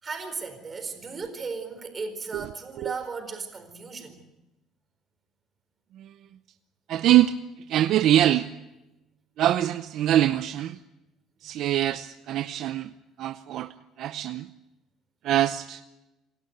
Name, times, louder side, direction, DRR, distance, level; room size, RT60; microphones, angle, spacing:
voice 1, 0.0-4.2, right 4 dB, 30° right, 7 dB, 4.4 m, -36 dB
voice 2, 6.9-8.5 9.4-10.8 11.4-14.5 15.2-15.8, right 12 dB, 65° right, 11 dB, 0.6 m, -24 dB
27.0 x 12.0 x 9.4 m, 1.0 s
cardioid pair, 110°, 0 cm